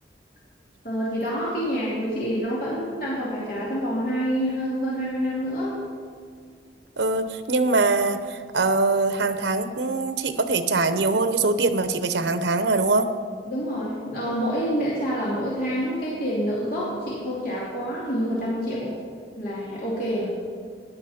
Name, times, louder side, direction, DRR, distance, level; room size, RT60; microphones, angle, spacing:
voice 1, 0.8-5.8 13.4-19.0 19.4-20.3, equal, 55° left, -7 dB, 2.8 m, -27 dB
voice 2, 7.0-13.1, right 3 dB, 85° right, 10 dB, 0.9 m, -23 dB
17.0 x 11.0 x 4.3 m, 2.1 s
head